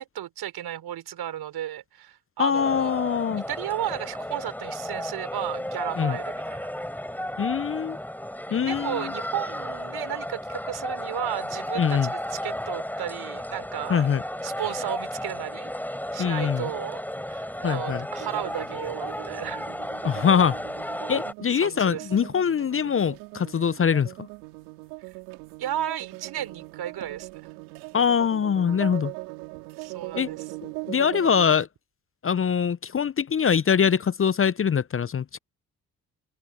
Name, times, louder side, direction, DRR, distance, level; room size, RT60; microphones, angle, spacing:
voice 1, 0.0-2.9 3.4-6.7 8.5-14.1 14.4-15.7 16.1-17.0 17.3-19.7 21.5-22.1 25.6-27.5 29.8-30.5, right 11 dB, 65° right, 4.1 m, -34 dB
voice 2, 2.4-3.4 6.0-6.2 7.4-8.0 8.5-9.1 11.8-12.1 13.9-14.2 16.2-16.6 17.6-18.0 20.0-20.6 21.1-24.1 27.9-29.1 30.1-30.3 30.9-31.7 32.2-35.4, left 7 dB, 30° left, 0.7 m, -23 dB
sound 1, 2.5-21.3, equal, 5° left, 6.2 m, -34 dB
sound 2, 18.2-31.7, right 28 dB, 80° right, 4.0 m, -40 dB
open air
hypercardioid pair, 45°, 41 cm